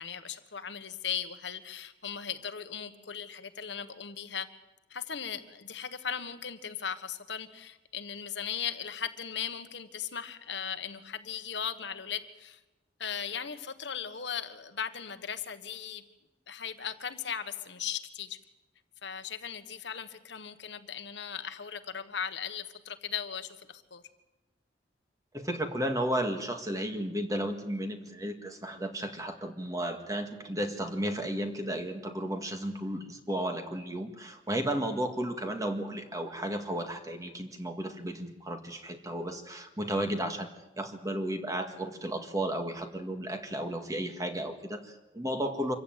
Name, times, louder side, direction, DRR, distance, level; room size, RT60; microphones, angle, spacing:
voice 1, 0.0-4.5 4.9-12.6 13.0-16.0 16.5-18.4 19.0-24.0, left 8 dB, 65° left, 9 dB, 1.3 m, -38 dB
voice 2, 25.3-40.5 40.8-45.7, right 1 dB, 20° right, 6 dB, 1.8 m, -33 dB
25.5 x 15.0 x 9.2 m, 1.1 s
head